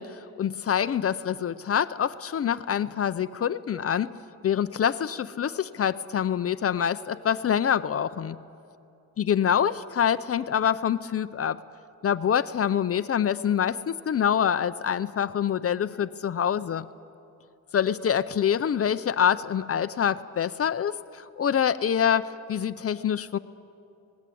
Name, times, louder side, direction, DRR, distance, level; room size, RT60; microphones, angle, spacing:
voice 1, 0.0-4.1 4.4-8.4 9.2-11.6 12.0-16.9 17.7-23.4, left 8 dB, 40° left, 13 dB, 0.6 m, -26 dB
29.0 x 19.0 x 8.5 m, 2.7 s
wide cardioid pair, 160°, 35 cm